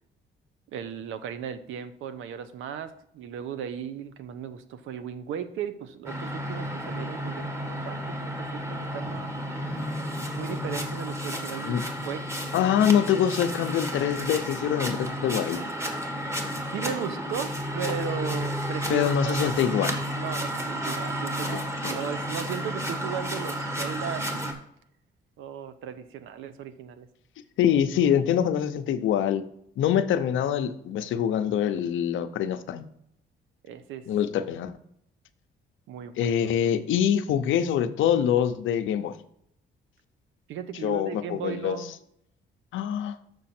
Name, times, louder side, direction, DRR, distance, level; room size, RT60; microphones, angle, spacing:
voice 1, 0.7-9.3 10.3-12.3 16.7-19.5 20.2-24.3 25.4-27.1 33.6-34.1 35.9-36.3 40.5-41.9, right 8 dB, 85° right, 12 dB, 0.7 m, -36 dB
sound 1, 6.1-24.5, equal, 15° right, 1.3 m, -32 dB
voice 2, 12.5-15.6 18.9-19.9 21.4-22.0 27.6-29.4 29.8-32.9 34.1-34.7 36.2-39.2 40.8-41.8 42.7-43.2, left 9 dB, 80° left, 10 dB, 0.7 m, -25 dB
6.6 x 6.2 x 4.3 m, 0.71 s
cardioid pair, 90°, 20 cm